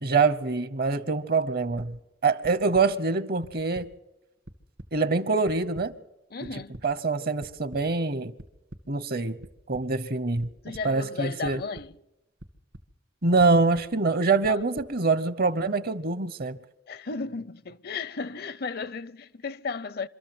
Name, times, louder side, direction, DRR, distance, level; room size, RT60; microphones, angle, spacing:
voice 1, 0.0-3.9 4.9-5.9 6.8-8.3 8.9-9.4 9.7-10.5 10.8-11.6 13.2-16.6, right 4 dB, 55° right, 0.9 m, -25 dB
sound 1, 1.8-1.9 2.4-2.8 3.4-3.8 4.2-4.9 5.5-5.8 6.4-6.8 7.4-7.8 8.4-8.8 9.4-9.8 10.4-10.8 11.4-11.9 12.4-12.8 13.4-13.8 14.4-14.9, right 1 dB, 70° right, 2.1 m, -44 dB
voice 2, 6.3-6.8 10.6-12.0 14.5-14.6 16.9-20.1, left 4 dB, 55° left, 0.6 m, -34 dB
25.5 x 13.5 x 7.9 m
head